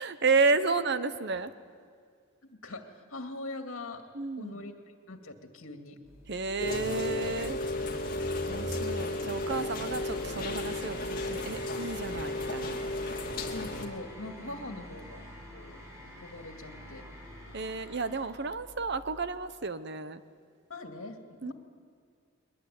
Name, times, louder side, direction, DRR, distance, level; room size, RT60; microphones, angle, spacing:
voice 1, 0.0-1.5 4.1-4.6 6.3-7.6 8.5-12.8 14.5-14.6 15.2-15.3 17.5-20.2 21.4-21.5, right 4 dB, 50° right, 13 dB, 0.9 m, -31 dB
voice 2, 2.4-4.1 4.4-4.8 5.1-6.0 13.4-15.2 15.5-15.8 16.2-17.1 20.7-21.5, left 2 dB, 70° left, 4 dB, 2.4 m, -42 dB
sound 1, 6.0-19.3, left 1 dB, 15° right, 5.9 m, -49 dB
Rain, 6.6-13.9, left 2 dB, 40° left, 2.5 m, -33 dB
22.5 x 20.5 x 9.5 m, 2.1 s
head